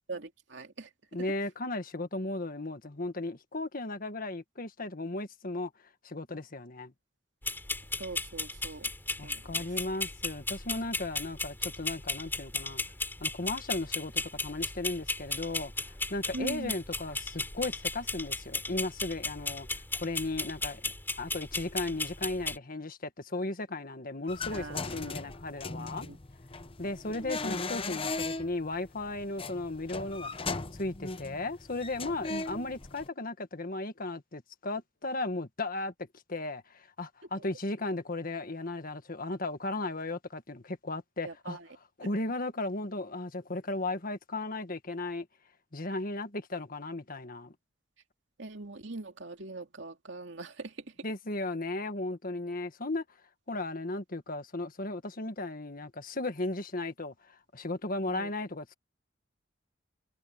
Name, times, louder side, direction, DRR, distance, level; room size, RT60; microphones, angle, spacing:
voice 1, 0.1-0.9 1.2-1.3 8.0-9.7 16.3-16.8 24.5-25.3 25.7-26.2 27.1-27.6 32.3-32.5 41.2-41.7 42.0-42.1 48.4-50.9 58.1-58.3, right 2 dB, 70° right, 2.5 m, -42 dB
voice 2, 1.1-5.7 6.0-6.9 9.2-12.8 13.2-20.9 21.2-26.1 26.8-30.3 30.8-35.9 36.3-41.6 42.0-45.3 45.7-47.5 51.0-53.0 53.5-58.7, left 2 dB, 50° left, 1.7 m, -36 dB
sound 1, 7.4-22.6, left 3 dB, 10° left, 3.1 m, -36 dB
sound 2, 24.3-33.1, left 3 dB, 30° left, 0.9 m, -38 dB
head